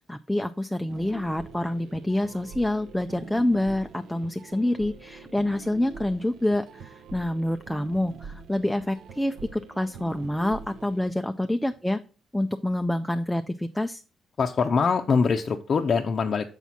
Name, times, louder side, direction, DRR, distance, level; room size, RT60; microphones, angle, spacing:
voice 1, 0.1-12.0 12.3-14.0, left 1 dB, 5° left, 8 dB, 0.4 m, -27 dB
sound 1, 0.9-11.1, right 5 dB, 75° right, 0.8 m, -44 dB
voice 2, 14.4-16.5, left 5 dB, 45° left, 3 dB, 0.6 m, -23 dB
7.1 x 4.2 x 5.9 m, 0.36 s
cardioid pair, 90°, 0 cm